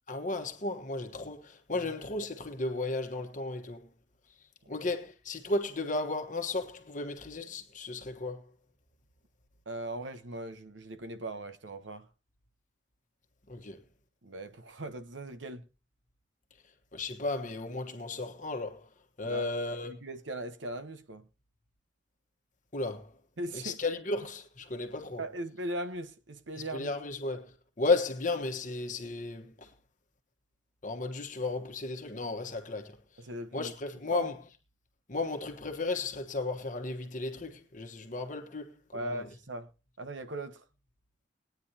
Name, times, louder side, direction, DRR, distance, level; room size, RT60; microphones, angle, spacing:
voice 1, 0.1-3.9 4.7-8.5 13.5-13.8 16.9-18.9 19.2-20.0 22.7-23.1 23.5-25.2 26.6-29.7 30.8-33.0 33.5-34.4 35.1-39.3, left 3 dB, 45° left, 1.2 m, -34 dB
voice 2, 9.7-12.1 14.2-15.7 19.2-19.5 19.8-21.3 23.4-23.8 25.2-26.9 33.2-33.7 34.1-34.3 38.9-39.7 40.0-40.6, right 1 dB, 90° right, 1.0 m, -39 dB
21.0 x 9.3 x 2.8 m
head